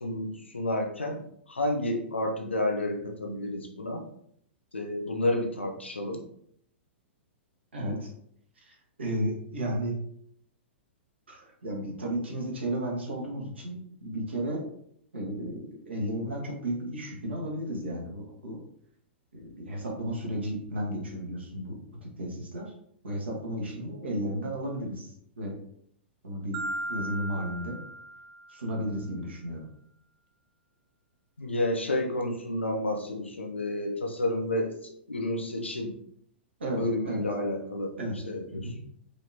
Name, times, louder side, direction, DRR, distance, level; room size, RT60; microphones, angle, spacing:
voice 1, 0.0-1.2 1.5-4.0 4.7-6.2 31.4-36.0 36.7-38.7, left 1 dB, 75° left, 2 dB, 0.8 m, -30 dB
voice 2, 7.7-8.1 8.6-10.0 11.3-14.6 15.1-18.6 19.3-22.7 23.0-25.5 26.2-26.6 26.9-27.8 28.5-29.6 36.6-37.2 38.0-38.2 38.5-38.8, right 1 dB, 70° right, -2 dB, 1.3 m, -33 dB
Marimba xylophone, 26.5-28.7, right 1 dB, 30° right, 0.5 m, -37 dB
4.9 x 2.9 x 2.7 m, 0.67 s
figure-of-eight pair, 105°, 6 cm